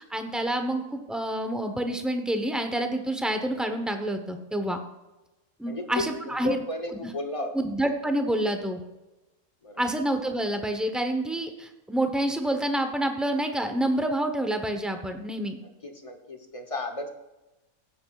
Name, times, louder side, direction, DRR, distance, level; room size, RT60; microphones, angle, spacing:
voice 1, 0.0-4.8 5.6-6.6 7.5-8.8 9.8-15.6, right 1 dB, ahead, 6 dB, 0.4 m, -28 dB
voice 2, 5.7-7.5 9.6-9.9 15.8-17.1, left 2 dB, 30° left, 4 dB, 0.8 m, -33 dB
15.5 x 8.5 x 2.3 m, 1.0 s
omnidirectional pair, 1.5 m